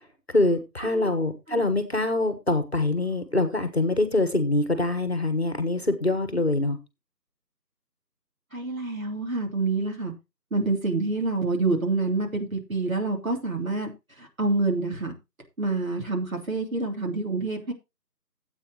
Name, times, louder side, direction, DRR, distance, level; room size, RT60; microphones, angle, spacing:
voice 1, 0.3-6.8, left 2 dB, 40° left, 9 dB, 1.3 m, -24 dB
voice 2, 8.5-10.1 10.5-13.9 14.2-15.1 15.6-17.7, right 3 dB, 55° right, 2 dB, 3.2 m, -27 dB
14.0 x 8.4 x 3.0 m, 0.24 s
figure-of-eight pair, 170°, 50 cm